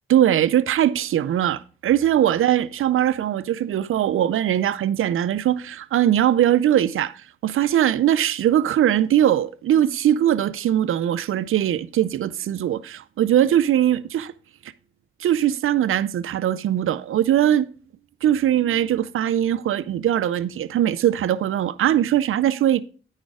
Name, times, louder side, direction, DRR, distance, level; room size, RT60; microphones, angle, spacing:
voice 1, 0.1-7.1 7.4-14.3 15.2-17.7 18.2-22.8, right 11 dB, 80° right, 0.4 m, -20 dB
10.0 x 6.4 x 3.5 m
cardioid pair, 50°, 21 cm